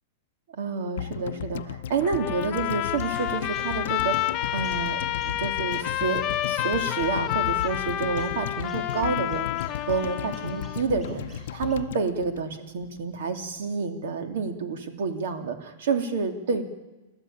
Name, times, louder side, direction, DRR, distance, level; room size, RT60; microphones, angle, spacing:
voice 1, 0.5-16.6, right 4 dB, 65° right, 6 dB, 2.9 m, -29 dB
sound 1, 1.0-13.2 13.4-13.5, left 10 dB, 70° left, 0.7 m, -36 dB
Trumpet, 2.0-10.8, left 14 dB, 25° left, 1.0 m, -29 dB
sound 2, 2.5-11.7, right 2 dB, 15° right, 6.6 m, -49 dB
29.0 x 12.5 x 8.7 m, 1.1 s
supercardioid pair, 170°, 0 cm